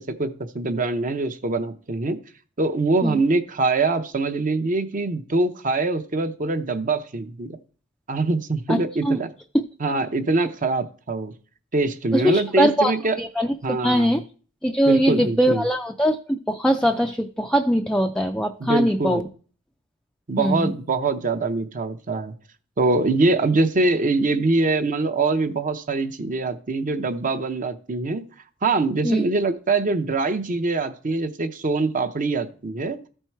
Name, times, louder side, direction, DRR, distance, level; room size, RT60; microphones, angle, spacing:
voice 1, 0.0-2.2 2.6-7.5 8.1-9.3 9.8-11.3 11.7-13.2 13.6-14.2 14.9-15.6 18.6-19.2 20.3-22.3 22.8-28.2 28.6-33.0, right 3 dB, 40° right, 9 dB, 0.6 m, -23 dB
voice 2, 12.1-14.2 14.6-19.3 20.4-20.7 29.0-29.3, equal, 5° left, 3 dB, 0.3 m, -21 dB
13.5 x 4.5 x 4.5 m, 0.42 s
head